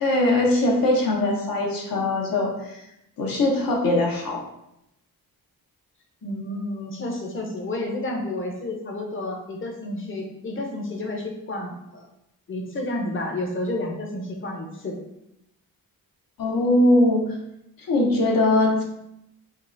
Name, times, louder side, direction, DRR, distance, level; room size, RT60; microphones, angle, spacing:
voice 1, 0.0-2.8 3.2-4.5 16.4-17.4 17.9-18.8, left 1 dB, 65° left, -1 dB, 0.8 m, -21 dB
voice 2, 6.2-12.1 12.5-15.0, left 1 dB, 35° left, 1 dB, 0.7 m, -30 dB
5.2 x 2.0 x 2.6 m, 0.82 s
wide cardioid pair, 105°, 37 cm